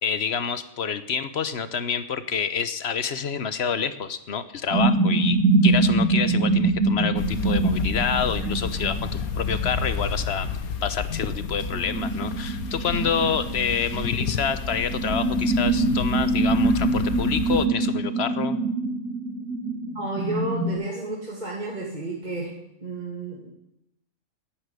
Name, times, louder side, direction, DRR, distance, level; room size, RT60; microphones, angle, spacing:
voice 1, 0.0-5.4 5.6-9.1 9.4-10.5 10.8-18.6, left 6 dB, 50° left, 13 dB, 1.2 m, -28 dB
sound 1, 4.7-10.2 10.4-20.7, right 3 dB, 80° right, 3.3 m, -24 dB
sound 2, 7.2-17.7, left 6 dB, 75° left, 1.5 m, -31 dB
voice 2, 19.9-22.5 22.8-23.5, right 2 dB, 30° right, -3 dB, 2.5 m, -31 dB
12.0 x 10.5 x 9.7 m, 0.84 s
omnidirectional pair, 1.5 m